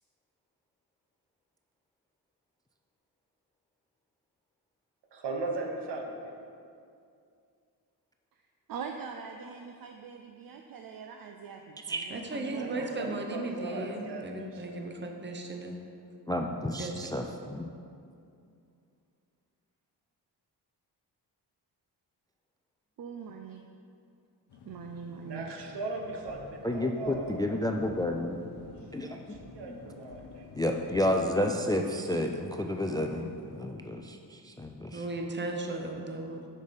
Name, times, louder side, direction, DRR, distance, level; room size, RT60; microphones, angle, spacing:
voice 1, 5.1-6.3 12.4-14.8 25.3-27.5 29.0-30.5, right 3 dB, 75° right, 2 dB, 1.1 m, -38 dB
voice 2, 8.7-13.1 23.0-23.6 24.6-25.5, right 6 dB, 60° right, 4 dB, 0.5 m, -43 dB
voice 3, 12.1-15.8 16.8-16.9 34.9-36.5, right 2 dB, 25° right, 3 dB, 0.8 m, -36 dB
voice 4, 16.3-17.7 26.6-28.5 28.9-29.2 29.7-29.8 30.6-35.0, left 1 dB, 10° left, 3 dB, 0.3 m, -31 dB
sound 1, 24.5-33.7, left 4 dB, 70° left, 0.8 m, -52 dB
sound 2, 26.2-31.4, left 2 dB, 55° left, 1.3 m, -52 dB
6.4 x 5.3 x 5.2 m, 2.4 s
cardioid pair, 95°, 41 cm